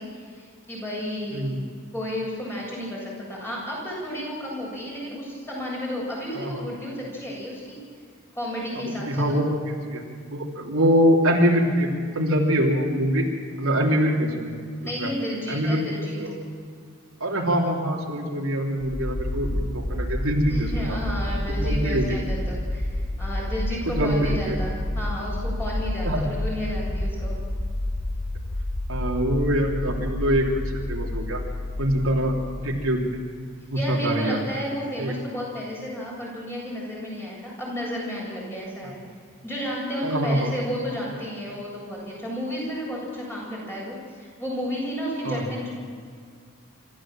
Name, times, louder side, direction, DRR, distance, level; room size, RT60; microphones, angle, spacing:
voice 1, 0.0-1.5 1.9-7.8 8.3-9.4 14.8-16.2 20.5-27.4 33.7-39.0 39.4-45.7, equal, 10° left, -4 dB, 7.7 m, -32 dB
voice 2, 8.8-9.5 9.9-10.0 10.3-11.9 12.1-13.2 13.6-14.6 15.0-15.1 15.5-16.3 17.2-21.0 21.5-22.2 23.9-24.6 26.0-26.3 28.9-31.4 31.8-32.3 32.6-33.2 33.7-34.4 35.0-35.1 38.8-38.9 40.0-40.5 45.2-45.4, equal, 80° right, -1 dB, 3.3 m, -24 dB
sound 1, 18.8-33.6, left 1 dB, 45° left, 2.9 m, -29 dB
26.5 x 14.0 x 7.6 m, 2.1 s
head